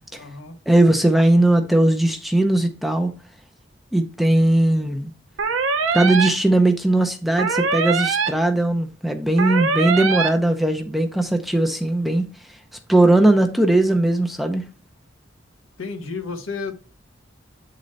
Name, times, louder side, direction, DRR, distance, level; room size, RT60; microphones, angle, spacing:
voice 1, 0.1-0.5 15.8-16.7, left 4 dB, 90° left, 1.1 m, -31 dB
voice 2, 0.7-3.1 3.9-5.1 5.9-12.3 12.9-14.6, right 1 dB, ahead, 0.5 m, -18 dB
sound 1, 5.4-6.3 7.4-8.3 9.4-10.3, right 5 dB, 80° right, 0.7 m, -22 dB
8.4 x 3.9 x 3.2 m
head